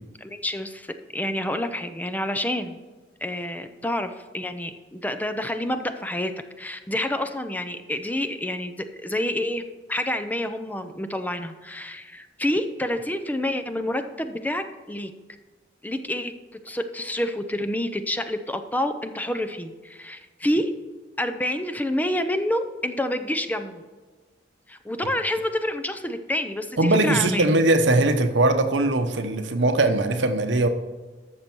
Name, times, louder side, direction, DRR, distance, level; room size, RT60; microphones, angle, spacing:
voice 1, 0.2-2.8 3.2-6.3 6.6-15.1 15.8-16.3 16.6-20.7 21.2-23.8 24.7-27.5, left 1 dB, 10° left, 9 dB, 0.6 m, -28 dB
voice 2, 26.8-30.7, right 2 dB, 80° right, 8 dB, 1.0 m, -20 dB
13.0 x 6.7 x 4.6 m, 1.4 s
head